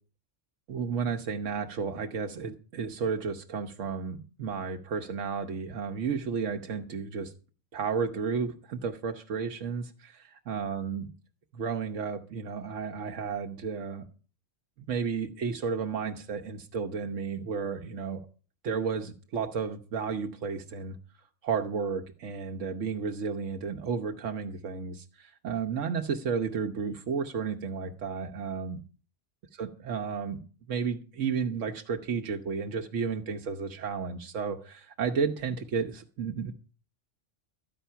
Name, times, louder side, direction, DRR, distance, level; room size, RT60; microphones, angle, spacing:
voice 1, 0.7-7.3 7.7-11.1 11.5-14.1 14.9-18.2 18.6-21.0 21.4-28.8 29.5-30.4 30.7-36.5, right 5 dB, 90° right, 4 dB, 1.3 m, -32 dB
12.5 x 9.8 x 5.7 m, 0.38 s
omnidirectional pair, 1.2 m